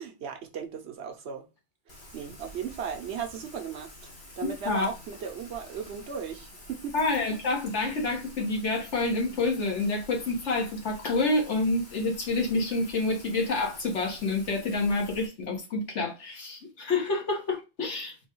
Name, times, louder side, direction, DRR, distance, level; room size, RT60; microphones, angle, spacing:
voice 1, 0.0-1.5 1.9-4.1 4.4-6.9, right 7 dB, 70° right, 1.1 m, -37 dB
Rain, 1.9-15.3, left 1 dB, 65° left, 1.6 m, -49 dB
voice 2, 4.4-4.9 6.9-18.1, left 3 dB, 85° left, 1.7 m, -28 dB
4.1 x 2.4 x 4.5 m
omnidirectional pair, 1.2 m